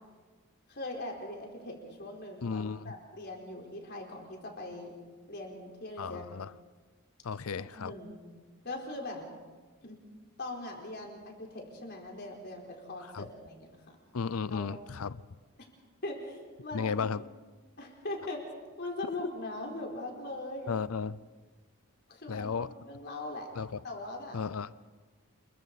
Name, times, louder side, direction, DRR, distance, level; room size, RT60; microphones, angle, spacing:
voice 1, 0.7-4.9 5.3-6.3 7.7-8.2 8.6-9.2 9.8-10.0 10.4-14.0 14.5-14.8 16.0-17.0 17.8-18.4 18.8-20.7 22.1-23.5 23.8-24.4, left 2 dB, 50° left, 0 dB, 4.3 m, -41 dB
voice 2, 2.4-3.0 6.0-6.5 7.2-7.9 13.1-13.3 14.1-15.2 16.7-17.2 20.7-21.2 22.3-22.7 23.6-23.8 24.3-24.7, left 5 dB, 70° left, 18 dB, 0.6 m, -34 dB
28.5 x 22.5 x 4.1 m, 1.4 s
head